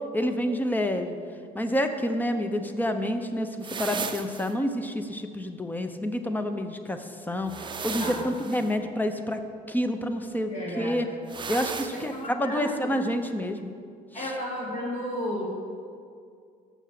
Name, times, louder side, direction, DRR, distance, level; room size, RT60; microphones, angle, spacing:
voice 1, 0.1-1.2 1.5-7.5 7.8-9.4 9.7-11.1 11.5-13.7 14.1-14.3, equal, 10° left, 7 dB, 0.7 m, -28 dB
sound 1, 3.6-4.5 7.4-8.7 11.3-12.1, right 5 dB, 30° right, 0.5 m, -35 dB
voice 2, 10.5-11.0 11.9-12.8 14.1-15.5, left 1 dB, 45° left, -3 dB, 2.3 m, -33 dB
6.9 x 6.1 x 7.5 m, 2.2 s
cardioid pair, 110°, 17 cm